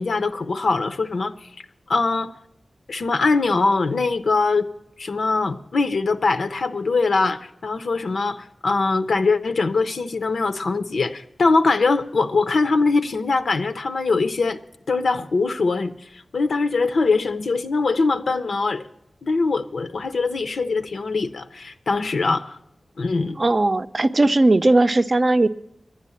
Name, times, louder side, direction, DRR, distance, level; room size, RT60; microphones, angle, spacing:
voice 1, 0.0-1.5 1.9-2.3 2.9-4.7 5.0-14.6 14.9-18.8 19.2-22.6 23.0-23.4, left 3 dB, 85° left, 0.6 m, -22 dB
voice 2, 23.4-25.5, right 2 dB, 45° right, 0.5 m, -18 dB
11.0 x 10.0 x 8.4 m
wide cardioid pair, 75°, 0 cm